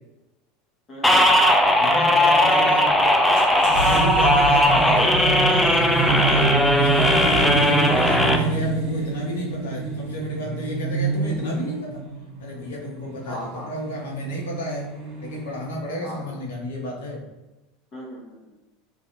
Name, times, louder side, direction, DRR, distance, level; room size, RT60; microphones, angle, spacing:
voice 1, 0.9-1.4 7.5-7.8 13.2-13.7 16.0-16.4 17.9-18.5, equal, 35° left, -5 dB, 1.1 m, -38 dB
sound 1, 1.0-8.4, left 1 dB, 5° left, 0.3 m, -18 dB
voice 2, 1.8-3.0 3.6-12.0 12.4-14.9 15.2-17.2, left 1 dB, 70° left, -2 dB, 0.7 m, -32 dB
sound 2, 3.4-15.5, right 4 dB, 55° right, 0.7 m, -26 dB
2.5 x 2.3 x 2.8 m, 1.0 s
figure-of-eight pair, 80°, 0 cm